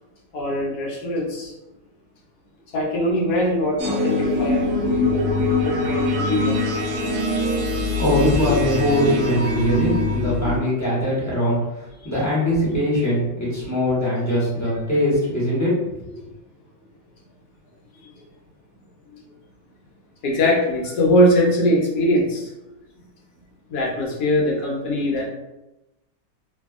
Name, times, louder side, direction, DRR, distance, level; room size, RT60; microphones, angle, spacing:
voice 1, 0.3-1.5 2.7-4.7 5.6-6.6 19.1-19.2 20.2-22.5 23.7-25.3, left 1 dB, 70° left, -2 dB, 1.1 m, -21 dB
sound 1, 3.8-10.6, left 2 dB, 70° right, 1.0 m, -23 dB
voice 2, 8.0-11.6 12.0-15.7 16.0-16.2, equal, 10° left, -9 dB, 0.9 m, -21 dB
2.7 x 2.6 x 2.3 m, 0.97 s
omnidirectional pair, 1.9 m